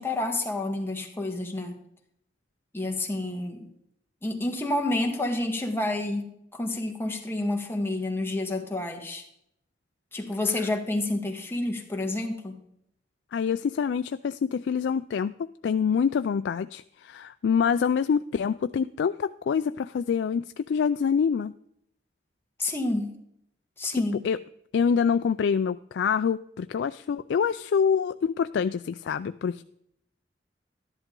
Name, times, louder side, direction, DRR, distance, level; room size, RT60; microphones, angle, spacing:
voice 1, 0.0-1.7 2.7-3.7 4.2-9.2 10.1-12.6 22.6-23.1 23.8-24.2, left 2 dB, 15° left, 2 dB, 1.7 m, -29 dB
voice 2, 13.3-21.5 23.9-24.4 24.7-29.6, left 6 dB, 90° left, 11 dB, 0.3 m, -26 dB
13.0 x 11.0 x 3.8 m, 0.73 s
head